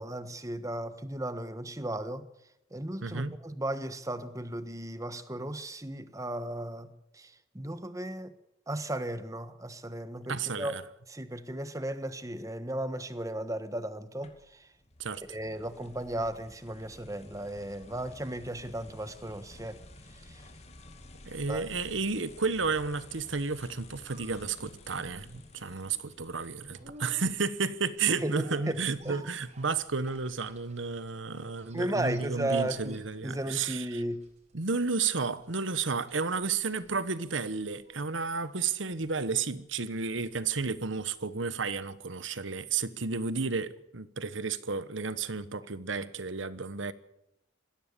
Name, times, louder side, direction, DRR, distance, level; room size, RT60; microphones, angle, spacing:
voice 1, 0.0-2.3 2.7-8.4 8.7-10.7 11.1-14.7 15.3-19.8 20.1-20.4 21.5-21.7 28.2-28.8 29.0-29.3 31.7-34.2, right 1 dB, 15° right, 1.3 m, -35 dB
voice 2, 3.0-3.4 10.3-10.8 15.0-15.2 21.3-34.0 34.5-46.9, right 4 dB, 75° right, 1.2 m, -32 dB
sound 1, 14.2-26.9, left 2 dB, 35° left, 2.4 m, -52 dB
sound 2, 23.9-41.5 41.8-41.9, right 1 dB, 35° right, 4.8 m, -57 dB
20.5 x 15.5 x 8.4 m
head